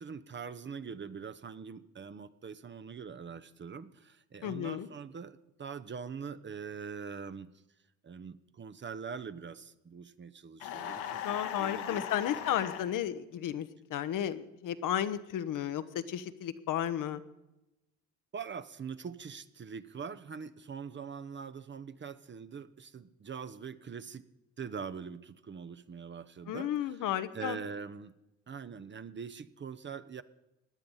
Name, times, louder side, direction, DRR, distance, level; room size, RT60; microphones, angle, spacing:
voice 1, 0.0-7.5 8.0-12.1 18.3-24.2 24.6-27.0 27.3-28.1 28.5-30.2, right 6 dB, 30° right, 13 dB, 0.9 m, -43 dB
voice 2, 4.4-4.9 11.2-17.2 26.5-27.6, left 10 dB, 55° left, 12 dB, 1.1 m, -33 dB
sound 1, 10.6-12.9, left 9 dB, 75° left, 1.7 m, -38 dB
16.5 x 10.5 x 5.6 m, 0.94 s
hypercardioid pair, 60°, 37 cm